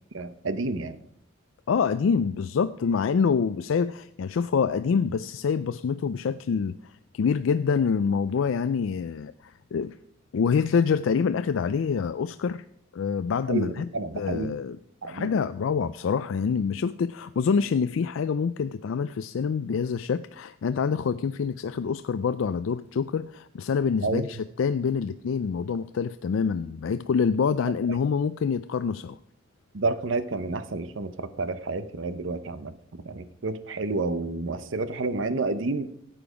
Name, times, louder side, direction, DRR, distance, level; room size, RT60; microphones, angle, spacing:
voice 1, 0.1-1.0 13.5-14.5 15.0-15.3 24.0-24.2 29.7-32.7 33.0-35.9, right 3 dB, 70° right, 0.8 m, -30 dB
voice 2, 1.7-6.8 7.1-10.0 10.3-12.6 12.9-13.9 14.1-14.8 15.0-29.2, left 6 dB, 80° left, 0.4 m, -26 dB
14.5 x 8.8 x 5.0 m
head